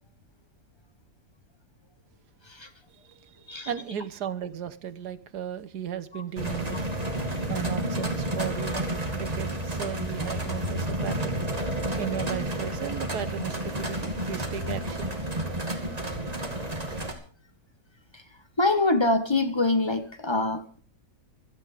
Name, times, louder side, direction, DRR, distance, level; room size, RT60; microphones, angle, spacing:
voice 1, 3.6-6.8 7.5-11.4 12.0-15.1, right 9 dB, 70° right, 1.6 m, -35 dB
sound 1, 6.4-17.1, right 1 dB, 20° right, 2.5 m, -31 dB
voice 2, 18.6-20.6, left 2 dB, 20° left, 1.1 m, -24 dB
15.5 x 13.5 x 5.0 m
omnidirectional pair, 1.8 m